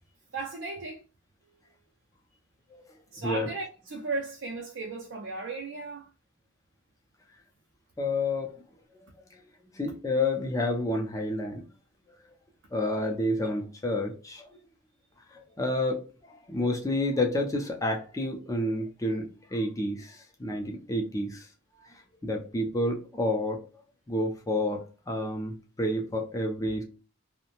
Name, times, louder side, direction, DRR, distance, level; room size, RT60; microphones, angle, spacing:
voice 1, 0.3-1.0 1.4-1.8 3.1-6.1, right 3 dB, 70° right, 0.5 m, -36 dB
voice 2, 8.0-8.5 9.3-9.4 9.7-11.6 12.7-14.5 15.3-19.3 19.5-21.5 21.9-23.6 24.1-26.8, left 1 dB, 15° left, 0.5 m, -29 dB
2.6 x 2.1 x 2.8 m
head